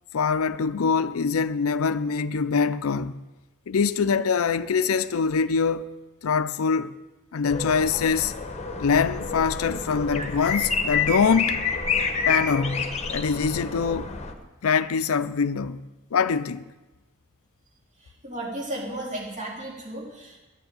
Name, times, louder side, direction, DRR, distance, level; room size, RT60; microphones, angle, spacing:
voice 1, 0.1-3.1 3.7-5.9 6.2-6.9 7.3-8.3 8.8-11.6 12.3-14.1 14.6-15.8 16.1-16.6, left 5 dB, 70° left, 0.5 m, -24 dB
sound 1, 7.5-14.3, left 5 dB, 30° left, 1.1 m, -29 dB
voice 2, 18.0-20.4, right 1 dB, 35° right, 3.4 m, -34 dB
9.8 x 9.6 x 9.1 m
head